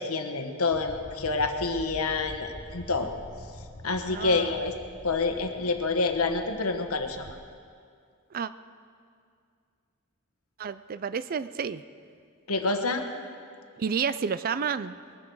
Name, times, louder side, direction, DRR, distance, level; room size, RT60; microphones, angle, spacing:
voice 1, 0.0-3.1 3.8-4.7 5.0-7.3 12.5-13.0, left 3 dB, 80° left, 6 dB, 1.3 m, -27 dB
sound 1, 0.7-7.4, equal, 45° left, 1.4 m, -46 dB
voice 2, 4.1-4.5 8.3-8.5 10.6-11.8 13.8-15.0, right 6 dB, 45° right, 14 dB, 0.4 m, -30 dB
21.0 x 13.0 x 4.7 m, 2.2 s
head